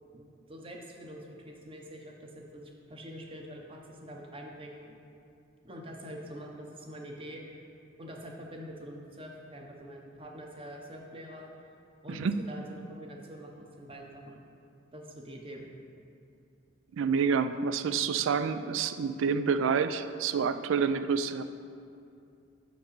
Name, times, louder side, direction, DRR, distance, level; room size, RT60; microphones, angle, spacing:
voice 1, 0.1-5.0 5.6-7.6 8.0-11.5 12.0-14.4 14.9-15.6, equal, 25° right, 0 dB, 0.8 m, -45 dB
voice 2, 16.9-21.4, right 6 dB, 70° right, 10 dB, 0.4 m, -28 dB
5.9 x 5.2 x 6.7 m, 2.5 s
head